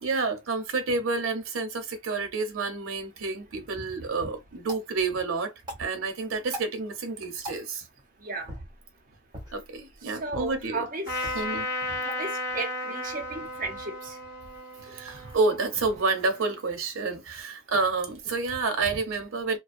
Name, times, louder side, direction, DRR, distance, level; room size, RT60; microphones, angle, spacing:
voice 1, 0.0-5.5 5.8-7.9 9.5-10.9 11.3-11.7 14.8-19.6, right 3 dB, 90° right, 0.7 m, -29 dB
sound 1, 3.6-13.6, equal, 20° right, 1.0 m, -46 dB
voice 2, 8.2-8.5 10.0-11.3 12.0-14.2 18.8-18.9, right 3 dB, 45° right, 0.7 m, -35 dB
Trumpet, 11.1-16.6, left 2 dB, 45° left, 1.2 m, -35 dB
2.4 x 2.2 x 2.5 m
head